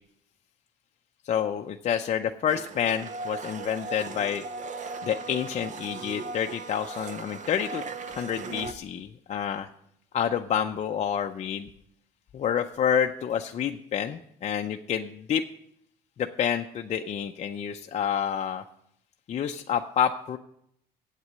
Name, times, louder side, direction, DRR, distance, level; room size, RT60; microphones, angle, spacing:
voice 1, 1.2-4.4 5.0-9.7 10.1-11.7 12.3-15.4 16.2-18.6 19.3-20.4, left 8 dB, 40° left, 4 dB, 0.5 m, -28 dB
Domestic sounds home sounds, 2.5-8.7, right 4 dB, 45° right, 0.8 m, -38 dB
8.3 x 8.1 x 7.4 m, 0.74 s
cardioid pair, 110°, 17 cm